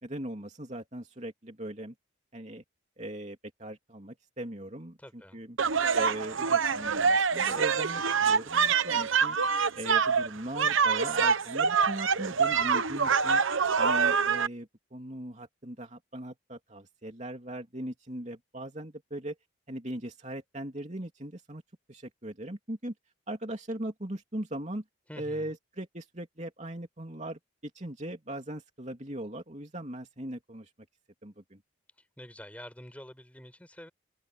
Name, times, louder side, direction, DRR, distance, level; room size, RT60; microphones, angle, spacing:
voice 1, 0.0-1.9 2.3-2.6 3.0-5.6 5.9-9.4 9.7-13.4 13.8-19.3 19.7-21.6 21.9-22.9 23.3-24.8 25.2-30.7 31.2-31.6, right 1 dB, 35° right, 3.0 m, -39 dB
voice 2, 5.0-5.4 25.1-25.6 32.2-33.9, equal, 5° left, 5.8 m, -47 dB
sound 1, 5.6-14.5, right 6 dB, 80° right, 1.0 m, -25 dB
head